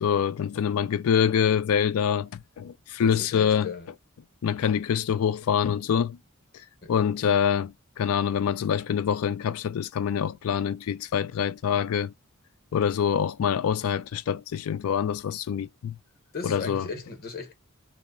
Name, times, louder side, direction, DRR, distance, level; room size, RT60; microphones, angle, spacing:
voice 1, 0.0-2.3 2.6-3.7 4.4-6.2 6.9-7.7 8.0-12.1 12.7-16.0 16.4-16.8, left 8 dB, 85° left, 0.3 m, -25 dB
voice 2, 3.0-3.9 6.8-6.9 16.3-17.5, left 4 dB, 45° left, 0.8 m, -36 dB
2.8 x 2.0 x 2.3 m
head